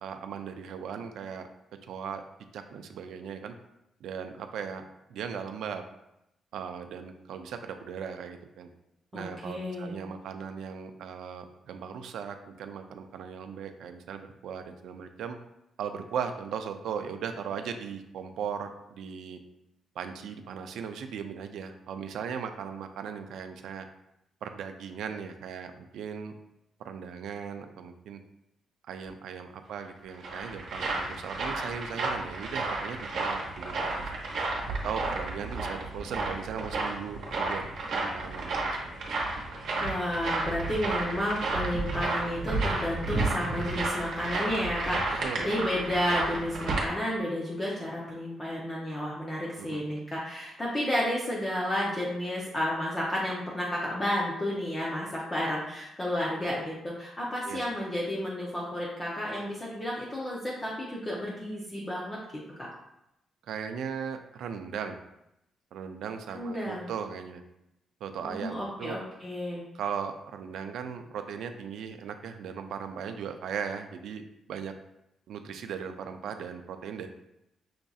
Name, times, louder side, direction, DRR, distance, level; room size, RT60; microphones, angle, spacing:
voice 1, 0.0-1.5 1.9-2.2 2.5-3.5 4.0-4.8 5.1-5.8 6.5-8.7 9.1-15.4 15.8-19.4 20.0-23.9 24.4-26.3 26.8-28.2 28.8-34.1 34.8-39.0 45.2-45.5 49.6-49.8 57.5-57.7 63.5-65.0 65.7-67.4 68.0-69.0 69.7-74.2 74.5-74.7 75.3-77.1, right 7 dB, 75° right, 7 dB, 0.3 m, -38 dB
voice 2, 9.1-10.0 39.8-62.7 66.3-66.9 68.2-69.6, left 1 dB, 20° left, -5 dB, 0.5 m, -32 dB
sound 1, 29.8-46.9, right 2 dB, 55° right, 0.9 m, -32 dB
5.7 x 2.6 x 2.3 m, 0.84 s
cardioid pair, 175°, 0 cm